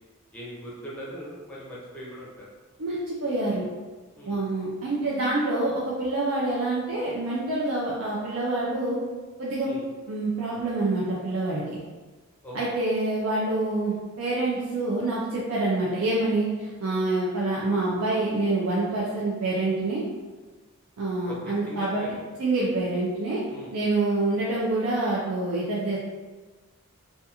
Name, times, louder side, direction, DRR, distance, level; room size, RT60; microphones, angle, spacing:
voice 1, 0.3-2.5 4.2-4.4 9.6-9.8 12.4-12.8 21.3-22.2 23.5-23.7, equal, 5° left, -7 dB, 0.5 m, -40 dB
voice 2, 2.8-3.7 4.3-9.0 9.4-9.7 10.1-11.8 12.5-20.0 21.0-22.0 22.4-23.4 23.7-26.0, right 2 dB, 65° right, -6 dB, 0.4 m, -26 dB
2.4 x 2.3 x 2.8 m, 1.3 s
head